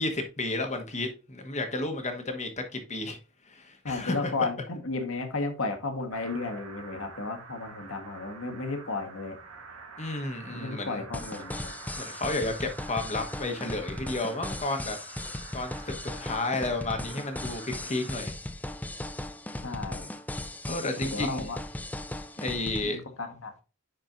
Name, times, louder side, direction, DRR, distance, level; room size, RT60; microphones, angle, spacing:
voice 1, 0.0-3.2 3.5-4.5 10.0-11.0 12.0-15.0 15.5-18.3 20.6-21.5 22.4-23.0, left 2 dB, 35° left, 1.2 m, -32 dB
voice 2, 3.8-9.4 10.5-11.7 19.6-20.1 21.0-21.6 22.8-23.6, left 3 dB, 65° left, 1.5 m, -33 dB
sound 1, 6.1-18.2, right 4 dB, 85° right, 1.5 m, -47 dB
sound 2, 11.1-22.8, left 1 dB, 5° left, 0.4 m, -37 dB
10.0 x 4.5 x 2.6 m
head